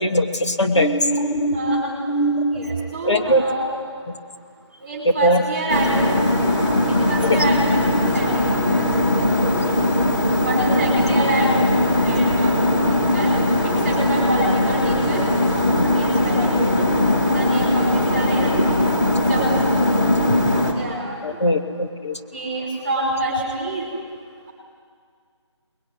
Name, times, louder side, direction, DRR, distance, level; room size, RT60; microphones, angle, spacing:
voice 1, 0.0-2.7 3.0-3.4 5.2-5.4 7.2-7.4 15.8-15.9 21.2-22.2, equal, 70° left, 3 dB, 2.7 m, -21 dB
voice 2, 1.5-2.0 2.5-3.7 4.8-6.6 6.9-7.8 8.1-8.4 8.7-9.7 10.4-13.3 13.8-15.4 15.7-16.9 17.3-18.7 19.3-19.7 20.7-21.2 22.3-23.8, right 2 dB, 20° right, -2 dB, 4.7 m, -27 dB
sound 1, 5.7-20.7, left 1 dB, 40° left, 4.0 m, -19 dB
25.5 x 21.5 x 9.8 m, 2.1 s
figure-of-eight pair, 175°, 15 cm